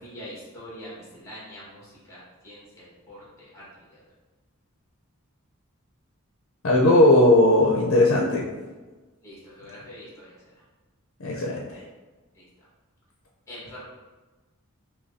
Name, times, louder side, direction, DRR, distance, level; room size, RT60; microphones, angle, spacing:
voice 1, 0.0-4.0 9.2-10.5 12.3-12.4 13.5-13.8, equal, 15° left, -7 dB, 1.5 m, -44 dB
voice 2, 6.6-8.5 11.2-11.8, left 1 dB, 65° left, -2 dB, 0.6 m, -18 dB
5.7 x 2.3 x 2.7 m, 1.2 s
head